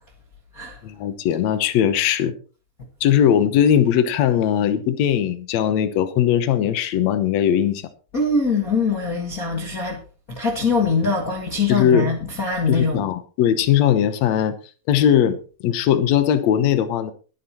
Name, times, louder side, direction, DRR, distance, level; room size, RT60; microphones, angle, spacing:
voice 1, 0.8-2.3 3.0-7.8 11.7-12.1 12.7-14.5 14.9-15.4 15.6-17.1, left 9 dB, 75° left, 1.6 m, -19 dB
voice 2, 8.1-10.0 10.3-13.1, left 4 dB, 40° left, 1.2 m, -22 dB
21.5 x 9.3 x 3.0 m
omnidirectional pair, 4.6 m